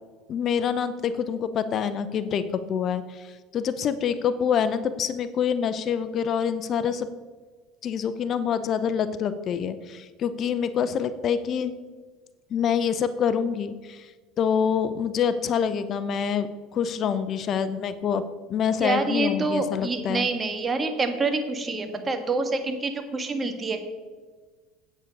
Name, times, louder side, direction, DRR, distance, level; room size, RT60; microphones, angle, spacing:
voice 1, 0.3-7.1 7.8-11.7 12.5-14.1 14.4-16.5 16.7-18.2 18.5-20.3, left 7 dB, 45° left, 13 dB, 0.6 m, -26 dB
voice 2, 18.8-23.8, right 3 dB, 25° right, 6 dB, 1.6 m, -27 dB
9.3 x 8.5 x 5.3 m, 1.4 s
supercardioid pair, 90°, 0 cm